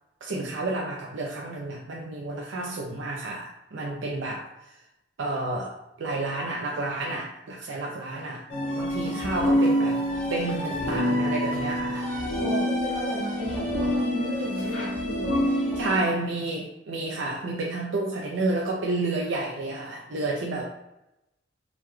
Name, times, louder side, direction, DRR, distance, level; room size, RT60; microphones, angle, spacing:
voice 1, 0.2-4.7 5.2-8.5 8.7-10.0 10.3-12.1 15.5-20.6, right 2 dB, 70° right, -1 dB, 0.4 m, -30 dB
sound 1, 8.5-16.0, equal, 45° left, 1.0 m, -26 dB
voice 2, 9.0-9.5 12.4-16.1, right 1 dB, 30° right, -4 dB, 0.7 m, -34 dB
3.7 x 2.1 x 3.1 m, 0.91 s
head